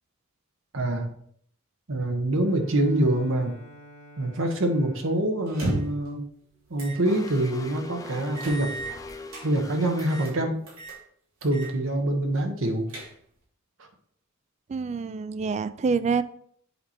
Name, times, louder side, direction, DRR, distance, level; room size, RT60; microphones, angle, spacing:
voice 1, 0.7-1.1 1.9-3.5 4.2-6.2 6.7-8.7 9.4-10.6 11.4-12.9 13.8-13.9, right 1 dB, 65° right, 5 dB, 1.1 m, -25 dB
Bowed string instrument, 2.4-7.1, equal, 75° left, 1.0 m, -51 dB
sound 1, 5.5-6.1 6.8-7.0 7.4-7.5 8.4-9.5 10.0-10.3 10.7-11.0 11.4-11.7 12.0-12.1 12.6-13.4, right 2 dB, 90° right, 2.8 m, -34 dB
sound 2, 7.0-10.3, left 3 dB, 15° left, 0.6 m, -41 dB
voice 2, 14.7-16.2, right 5 dB, 35° right, 15 dB, 0.3 m, -26 dB
7.4 x 4.3 x 4.4 m, 0.64 s
head